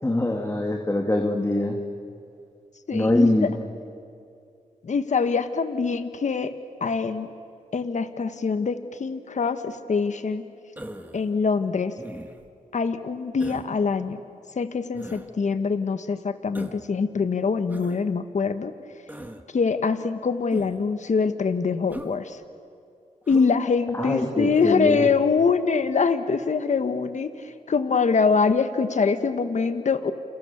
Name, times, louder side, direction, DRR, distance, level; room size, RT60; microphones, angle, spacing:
voice 1, 0.0-1.8 2.9-3.5 23.9-25.1, left 1 dB, 20° left, 2 dB, 2.7 m, -23 dB
voice 2, 2.9-3.5 4.8-6.5 6.8-7.3 7.7-10.4 11.1-11.9 12.7-14.2 14.6-18.7 19.5-22.4 23.3-27.3 27.7-30.1, left 5 dB, 60° left, 9 dB, 1.4 m, -24 dB
Human voice, 10.8-11.2 12.0-12.5 13.4-13.7 14.9-15.3 16.5-16.9 17.7-18.0 19.1-19.4 20.5-20.9 21.9-22.1 23.3-23.6 24.5-24.8, right 1 dB, 10° right, 2.2 m, -39 dB
29.0 x 28.5 x 7.1 m, 2.4 s
cardioid pair, 60°, 14 cm